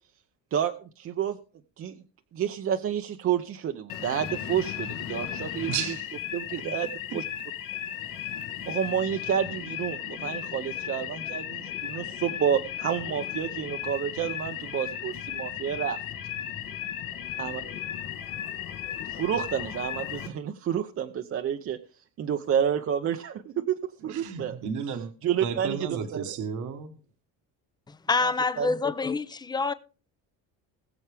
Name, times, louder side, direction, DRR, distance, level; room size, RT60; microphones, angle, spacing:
voice 1, 0.5-1.4 1.8-2.0 2.3-5.7 6.3-6.9 7.1-7.2 8.7-16.0 17.4-17.6 19.1-21.8 22.2-24.6 25.2-25.9 26.3-26.4 28.2-28.3 28.6-28.7, right 9 dB, 40° right, 0.7 m, -29 dB
sound 1, 3.9-20.3, left 10 dB, 65° left, 1.7 m, -35 dB
voice 2, 5.7-6.1 6.6-6.7 7.1-7.2 24.1-25.1 25.4-27.0, right 7 dB, 55° right, 1.4 m, -33 dB
voice 3, 27.9-29.7, left 4 dB, 10° left, 0.6 m, -27 dB
20.5 x 7.1 x 3.4 m
cardioid pair, 160°, 35 cm